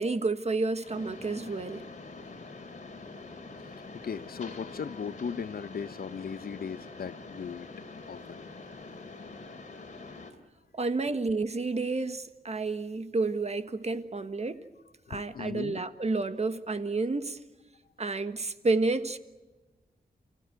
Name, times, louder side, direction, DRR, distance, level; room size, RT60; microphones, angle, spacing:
voice 1, 0.0-1.9 10.8-14.6 15.1-17.4 18.0-19.2, right 3 dB, 40° right, 10 dB, 1.5 m, -30 dB
Mechanisms, 0.8-10.3, left 3 dB, 45° left, 3.5 m, -45 dB
voice 2, 4.0-7.7 8.1-8.7 15.1-15.9, left 6 dB, 65° left, 15 dB, 0.8 m, -38 dB
29.5 x 16.0 x 9.4 m, 1.2 s
wide cardioid pair, 105°, 17 cm